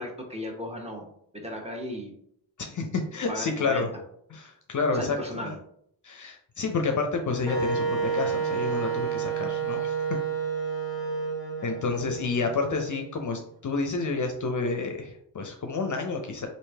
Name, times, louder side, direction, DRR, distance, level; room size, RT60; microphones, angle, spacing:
voice 1, 0.0-2.1 3.3-3.9 4.9-5.5, equal, 15° right, 1 dB, 1.0 m, -36 dB
voice 2, 2.6-3.9 4.3-5.6 6.0-9.9 11.6-16.5, left 4 dB, 40° left, 4 dB, 0.6 m, -29 dB
Wind instrument woodwind instrument, 7.5-13.3, right 6 dB, 10° left, 1.3 m, -30 dB
3.1 x 2.6 x 3.4 m, 0.70 s
supercardioid pair, 45°, 45 cm